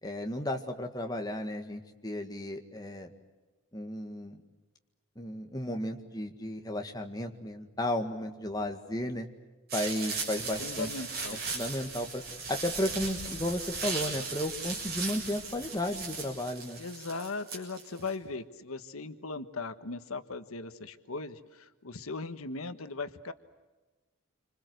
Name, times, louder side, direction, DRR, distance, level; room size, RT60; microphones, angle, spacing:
voice 1, 0.0-3.1 3.7-4.4 5.2-9.3 9.7-10.9 11.5-12.2 12.5-16.8, left 1 dB, 15° left, 4 dB, 1.8 m, -34 dB
sound 1, 9.7-18.1, right 4 dB, 45° right, 7.2 m, -37 dB
voice 2, 10.6-11.4 16.8-23.3, left 3 dB, 80° left, 10 dB, 1.3 m, -38 dB
28.0 x 26.0 x 7.9 m, 1.2 s
head